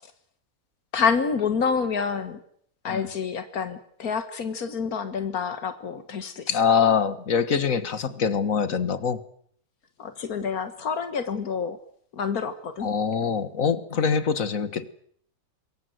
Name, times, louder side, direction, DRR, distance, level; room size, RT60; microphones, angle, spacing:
voice 1, 0.9-2.4 2.8-6.5 10.0-11.8 12.2-12.9, left 6 dB, 85° left, 10 dB, 2.0 m, -28 dB
voice 2, 6.5-9.2 12.8-14.9, left 6 dB, 65° left, 14 dB, 1.9 m, -24 dB
26.5 x 22.0 x 7.9 m, 0.64 s
omnidirectional pair, 1.5 m